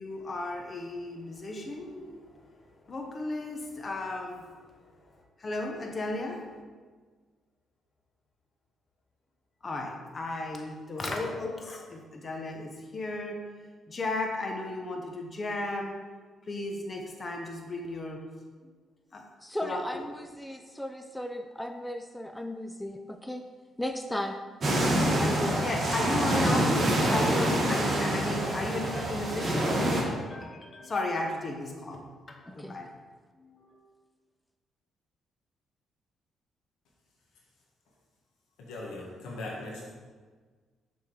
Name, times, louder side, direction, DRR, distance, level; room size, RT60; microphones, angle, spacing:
voice 1, 0.0-4.5 4.9-6.4 9.6-13.4 13.9-15.9 16.5-18.2 19.1-19.2 19.6-20.0 25.6-32.9 33.4-33.8, left 2 dB, 35° left, 2 dB, 1.0 m, -35 dB
voice 2, 19.4-23.5 23.8-24.4 25.1-25.7 26.0-26.2 32.5-32.8, left 1 dB, 5° left, 6 dB, 0.4 m, -36 dB
sound 1, 24.6-30.0, right 1 dB, 40° right, 2.0 m, -26 dB
voice 3, 38.6-39.9, left 2 dB, 85° left, -3 dB, 1.9 m, -39 dB
6.9 x 4.2 x 5.0 m, 1.5 s
cardioid pair, 90°, 0 cm